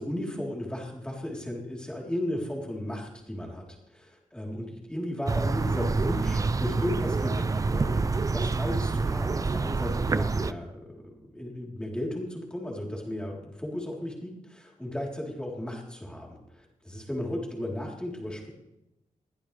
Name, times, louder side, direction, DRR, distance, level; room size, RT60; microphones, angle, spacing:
voice 1, 0.0-18.5, left 1 dB, 5° left, -2 dB, 3.7 m, -35 dB
sound 1, 5.3-10.5, right 4 dB, 25° right, 0.5 m, -27 dB
22.0 x 16.0 x 3.4 m, 0.93 s
wide cardioid pair, 170°, 13 cm